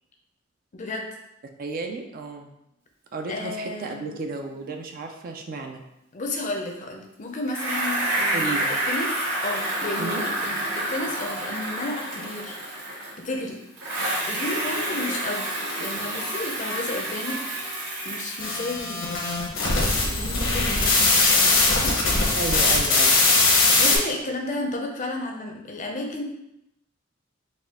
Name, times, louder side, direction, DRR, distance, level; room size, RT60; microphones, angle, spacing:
voice 1, 0.7-1.1 3.3-4.1 6.1-9.1 9.4-10.6 10.9-13.6 14.2-15.5 15.8-17.4 18.0-19.0 19.6-22.0 23.8-26.2, left 2 dB, 40° left, 2 dB, 0.6 m, -32 dB
voice 2, 1.6-2.5 3.1-5.8 8.3-8.7 10.0-10.2 22.4-23.5, right 3 dB, 50° right, 4 dB, 0.4 m, -33 dB
Bicycle, 7.5-13.3 13.8-19.0, right 1 dB, 80° right, 1.3 m, -29 dB
sound 1, 18.4-24.0, left 3 dB, 75° left, 0.9 m, -20 dB
4.2 x 2.3 x 3.6 m, 0.84 s
head